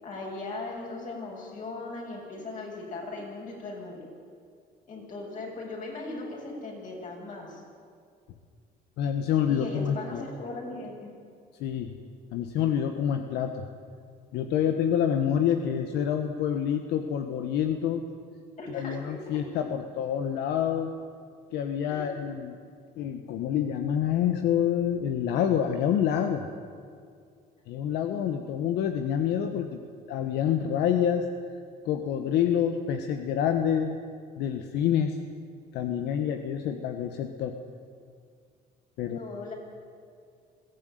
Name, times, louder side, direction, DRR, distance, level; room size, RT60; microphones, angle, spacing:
voice 1, 0.0-4.1 4.9-7.6 9.5-11.1 18.6-19.2 21.9-22.3 39.0-39.6, left 2 dB, 50° left, -1 dB, 7.7 m, -38 dB
voice 2, 9.0-10.3 11.6-11.9 12.3-13.7 14.3-18.0 18.7-20.9 21.5-22.6 23.0-26.5 27.7-29.8 30.1-31.3 31.8-34.0 34.4-35.2 35.7-37.6 39.0-39.2, left 9 dB, 85° left, 6 dB, 1.3 m, -27 dB
22.0 x 16.5 x 9.4 m, 2.2 s
cardioid pair, 110°, 17 cm